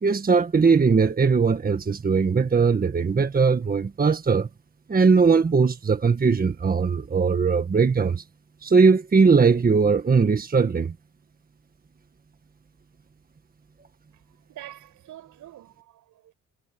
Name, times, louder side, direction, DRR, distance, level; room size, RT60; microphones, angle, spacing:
voice 1, 0.0-4.5 4.9-8.2 8.6-10.9, right 5 dB, 30° right, 1.7 m, -20 dB
voice 2, 14.5-16.3, right 13 dB, 80° right, 7.5 m, -45 dB
cardioid pair, 90°, 30 cm